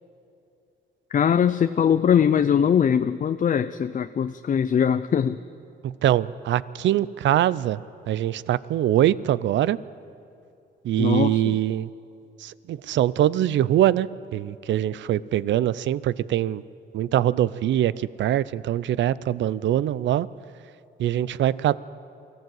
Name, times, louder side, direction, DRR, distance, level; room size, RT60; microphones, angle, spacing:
voice 1, 1.1-5.4 11.0-11.6, left 8 dB, 40° left, 10 dB, 0.6 m, -21 dB
voice 2, 5.8-7.8 8.1-9.8 10.8-11.9 12.4-16.6 16.9-20.3 21.0-21.8, right 12 dB, 70° right, 18 dB, 0.6 m, -23 dB
23.5 x 14.5 x 7.8 m, 2.6 s
cardioid pair, 90°, 20 cm